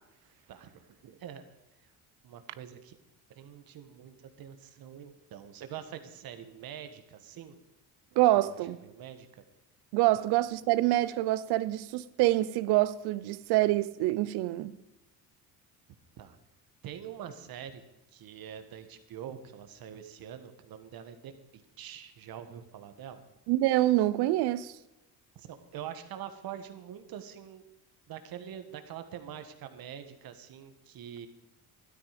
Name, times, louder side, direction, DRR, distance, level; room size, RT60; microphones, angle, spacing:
voice 1, 0.5-1.5 2.2-2.9 3.3-7.5 8.1-9.4 16.2-16.4 16.8-17.8 18.1-23.2 25.3-27.6 28.1-31.3, right 9 dB, 65° right, 1.6 m, -45 dB
voice 2, 8.2-8.8 9.9-14.7 23.5-24.7, right 16 dB, 85° right, 0.7 m, -26 dB
13.0 x 12.5 x 5.2 m
cardioid pair, 95°, 38 cm